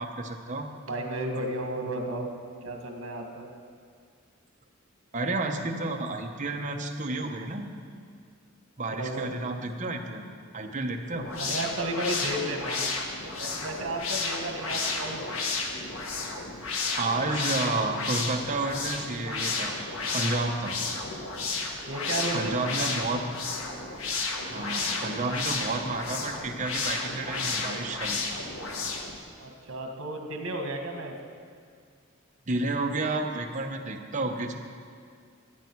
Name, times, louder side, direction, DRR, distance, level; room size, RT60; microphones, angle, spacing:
voice 1, 0.0-0.7 5.1-7.7 8.8-10.2 10.5-11.3 17.0-19.8 20.1-20.8 22.3-23.2 24.5-28.2 32.5-34.5, right 2 dB, 40° right, 3 dB, 1.0 m, -31 dB
voice 2, 0.9-2.3 2.6-3.5 8.9-9.4 11.3-12.9 13.4-15.4 21.8-23.1 29.4-31.1, right 1 dB, 75° right, 3 dB, 1.6 m, -33 dB
sound 1, 11.1-29.2, left 3 dB, 90° left, 1.4 m, -32 dB
15.0 x 9.3 x 4.6 m, 2.2 s
head